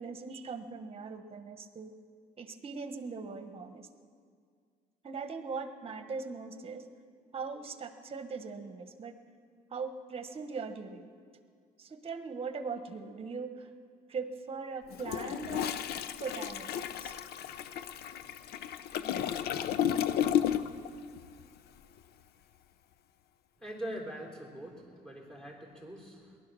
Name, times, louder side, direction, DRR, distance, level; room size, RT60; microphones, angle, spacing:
voice 1, 0.0-1.9 2.4-3.9 5.0-6.9 7.3-9.1 9.7-11.2 11.8-13.7 14.1-15.8 16.2-17.2, right 4 dB, 35° right, 9 dB, 1.3 m, -40 dB
Toilet flush, 14.9-20.9 21.2-21.4, left 10 dB, 70° left, 0.7 m, -33 dB
voice 2, 23.6-24.8 25.0-26.2, equal, 5° left, -1 dB, 3.6 m, -42 dB
19.0 x 11.5 x 6.3 m, 2.1 s
cardioid pair, 110°, 17 cm